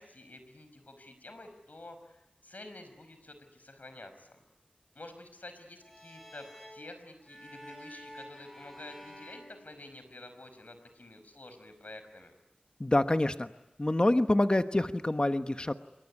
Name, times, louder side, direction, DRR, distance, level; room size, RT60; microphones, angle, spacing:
voice 1, 0.0-4.4 4.9-12.3, left 2 dB, 75° left, 9 dB, 5.4 m, -49 dB
sound 1, 5.8-10.4, equal, 5° left, 7.8 m, -50 dB
voice 2, 12.8-13.5 13.8-15.7, left 1 dB, 35° left, 9 dB, 1.1 m, -26 dB
26.0 x 23.0 x 9.9 m, 0.92 s
wide cardioid pair, 55°, 3 cm